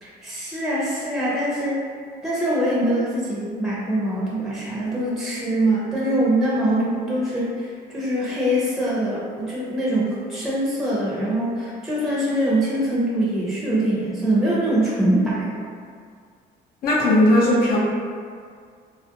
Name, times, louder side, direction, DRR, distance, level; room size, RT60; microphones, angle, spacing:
voice 1, 0.0-1.8 2.2-15.5, right 1 dB, ahead, -8 dB, 0.6 m, -23 dB
voice 2, 16.8-17.8, left 1 dB, 60° left, -4 dB, 0.6 m, -17 dB
2.4 x 2.1 x 2.8 m, 2.1 s
cardioid pair, 110°, 17 cm